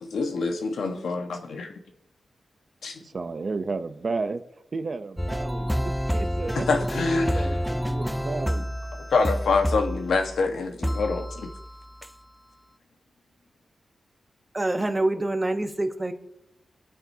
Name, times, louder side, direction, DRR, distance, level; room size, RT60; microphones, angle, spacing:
voice 1, 0.0-1.7 2.8-3.0 6.5-7.6 9.1-11.5, left 4 dB, 80° left, 1.3 m, -26 dB
voice 2, 3.0-4.4 4.7-8.7, right 3 dB, 45° right, 0.7 m, -33 dB
sound 1, 5.2-10.4 10.8-11.7 12.0-12.1, equal, ahead, 0.4 m, -28 dB
voice 3, 14.5-16.1, right 2 dB, 20° right, 1.0 m, -26 dB
25.0 x 9.1 x 2.8 m
wide cardioid pair, 95°, 0 cm